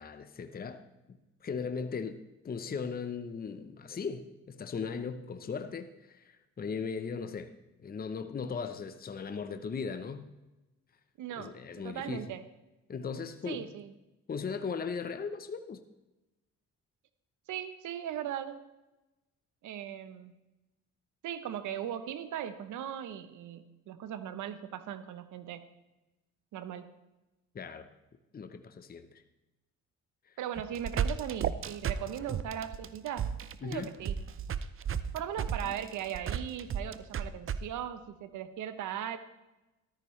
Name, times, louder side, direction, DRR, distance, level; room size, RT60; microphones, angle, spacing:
voice 1, 0.0-7.5 7.8-10.3 11.4-12.3 12.9-13.7 14.3-15.8 27.5-27.9 28.3-29.2 30.3-30.4 33.6-33.9, left 5 dB, 30° left, 8 dB, 0.8 m, -38 dB
voice 2, 11.2-11.6 11.8-12.4 13.5-13.9 17.5-18.6 19.6-20.3 21.2-25.6 26.5-26.9 30.4-33.3 33.6-34.2 35.1-39.2, right 10 dB, 80° right, 12 dB, 0.9 m, -38 dB
sound 1, 30.5-37.6, right 8 dB, 45° right, 0.6 m, -33 dB
13.5 x 13.0 x 3.2 m, 1.0 s
cardioid pair, 90°, 30 cm